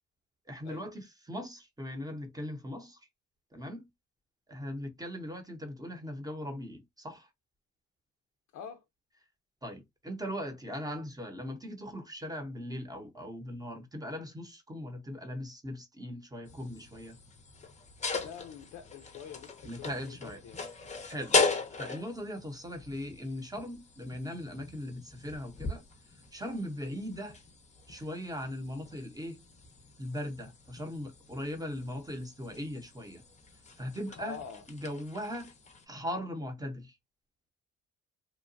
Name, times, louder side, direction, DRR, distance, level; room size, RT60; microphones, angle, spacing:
voice 1, 0.5-3.0 3.5-3.9 4.5-7.3 9.6-17.2 19.6-20.4 21.0-21.4 21.7-25.8 26.3-27.4 27.9-29.4 30.0-33.2 33.8-34.4 34.7-35.5 35.9-37.0, equal, 10° right, 0.8 m, -39 dB
voice 2, 8.5-8.8 18.2-20.6 34.2-34.6, left 7 dB, 65° left, 0.5 m, -45 dB
sound 1, 16.5-35.8, left 4 dB, 25° left, 0.6 m, -38 dB
2.9 x 2.2 x 2.5 m
cardioid pair, 90°, 30 cm